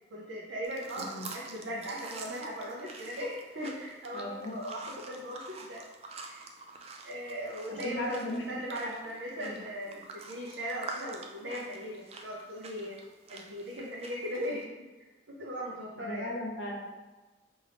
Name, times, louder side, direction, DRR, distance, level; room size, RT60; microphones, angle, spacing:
voice 1, 0.1-5.8 6.2-6.4 7.0-13.0 13.3-16.3, equal, 65° right, -4 dB, 0.6 m, -38 dB
sound 1, 0.6-14.6, right 3 dB, 30° right, 0.3 m, -47 dB
voice 2, 4.1-4.5 7.7-8.6 8.8-8.9 9.3-9.5 16.0-16.8, left 1 dB, 80° left, 0 dB, 0.8 m, -37 dB
4.9 x 2.6 x 3.4 m, 1.2 s
head